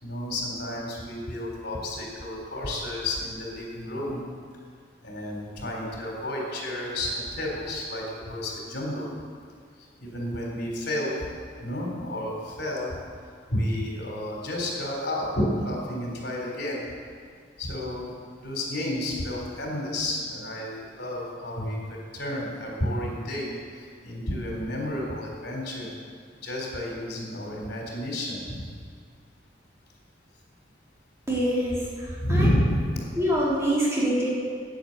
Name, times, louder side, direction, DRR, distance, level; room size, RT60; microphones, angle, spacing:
voice 1, 0.0-4.2 5.0-9.1 10.0-11.2 11.6-12.9 13.5-16.8 17.6-25.9 26.4-28.6 32.2-33.0, left 1 dB, 60° left, -2 dB, 3.7 m, -31 dB
voice 2, 31.3-32.5 33.2-34.3, equal, 15° right, -7 dB, 3.4 m, -25 dB
10.5 x 9.4 x 8.0 m, 2.1 s
head